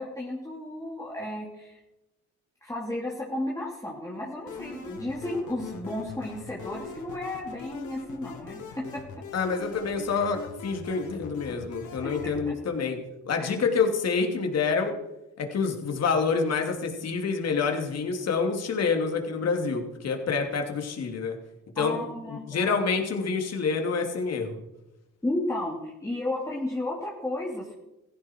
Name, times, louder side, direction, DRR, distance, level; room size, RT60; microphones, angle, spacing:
voice 1, 0.0-1.8 2.6-9.2 12.0-12.1 12.5-12.6 13.4-13.5 21.8-22.8 25.2-27.7, left 1 dB, 10° left, -4 dB, 2.9 m, -33 dB
sound 1, 4.5-12.5, left 5 dB, 80° left, 3.0 m, -42 dB
voice 2, 9.3-13.0 13.2-15.0 15.4-21.4 21.8-22.0 22.3-24.5, left 5 dB, 55° left, 3 dB, 2.9 m, -27 dB
16.5 x 14.5 x 4.6 m, 0.97 s
cardioid pair, 90°, 30 cm